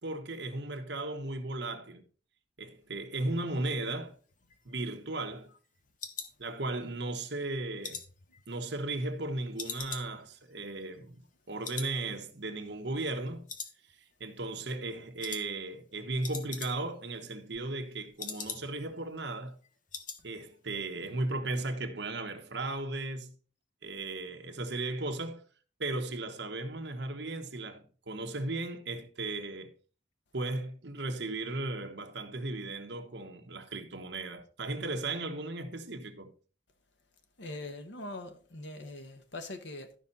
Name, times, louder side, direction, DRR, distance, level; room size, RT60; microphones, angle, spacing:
voice 1, 0.0-2.0 2.6-4.1 4.6-5.5 6.4-8.0 8.5-13.5 13.9-19.6 20.2-23.3 23.8-25.4 25.8-29.7 30.3-36.3, right 2 dB, 70° right, 1.3 m, -36 dB
sound 1, 4.3-7.1 7.4-9.2 9.6-11.4 11.6-12.0 12.3-12.4 12.8-13.2 13.5-14.3 14.6-14.8 15.2-15.5 15.8-15.9 16.1-17.0 17.3-18.9 19.3-19.4 19.6-20.2 20.5-20.8 21.1-21.2, left 6 dB, 45° left, 1.2 m, -43 dB
voice 2, 37.4-39.9, left 2 dB, 75° left, 1.4 m, -42 dB
12.5 x 5.5 x 4.1 m
head